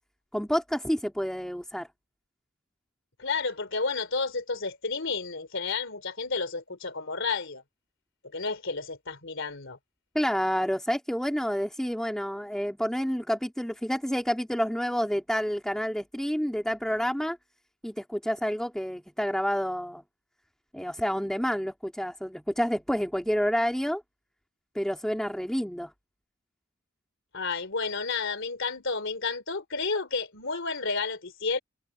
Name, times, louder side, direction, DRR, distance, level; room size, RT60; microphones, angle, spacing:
voice 1, 0.3-1.9 10.1-17.4 17.8-20.0 20.7-24.0 24.7-25.9, equal, 5° left, 3.1 m, -29 dB
voice 2, 3.2-7.6 8.3-9.8 27.3-31.6, left 4 dB, 65° left, 3.5 m, -31 dB
head